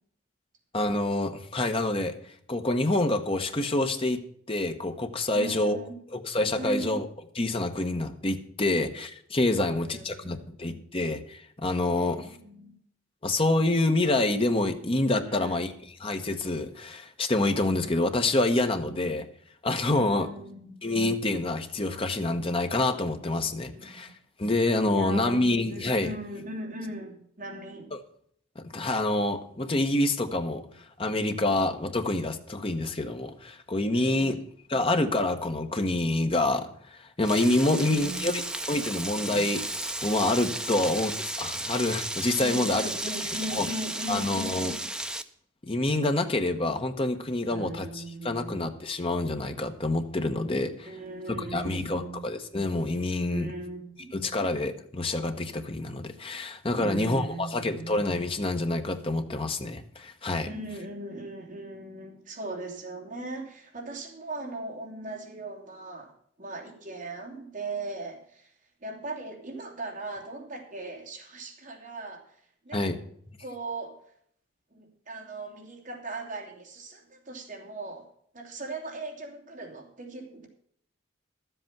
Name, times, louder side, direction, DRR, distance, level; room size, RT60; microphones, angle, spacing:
voice 1, 0.7-5.8 6.1-7.1 7.4-12.4 13.2-15.7 16.0-19.2 19.6-20.3 20.8-24.1 24.4-26.1 27.9-28.0 28.5-34.4 34.7-38.4 38.7-39.6 40.0-42.9 43.5-43.7 44.1-44.7 45.6-50.9 51.3-53.5 54.1-60.5 72.7-73.0, left 2 dB, 30° left, 6 dB, 1.1 m, -27 dB
voice 2, 5.3-6.0 6.6-7.0 9.5-10.4 11.9-12.7 15.2-15.6 18.8-19.1 19.9-21.1 23.7-24.1 24.9-27.9 31.5-31.6 33.9-34.4 37.7-38.4 38.9-39.1 40.6-40.9 42.4-44.8 47.5-48.6 50.8-52.2 53.3-54.1 56.7-57.9 60.4-66.1 66.4-68.5 68.8-72.9 73.4-74.0 74.7-78.1 78.3-80.5, right 2 dB, 40° right, -1 dB, 3.0 m, -39 dB
Frying (food), 37.2-45.2, right 1 dB, 5° right, 0.5 m, -34 dB
12.5 x 8.0 x 6.0 m, 0.65 s
head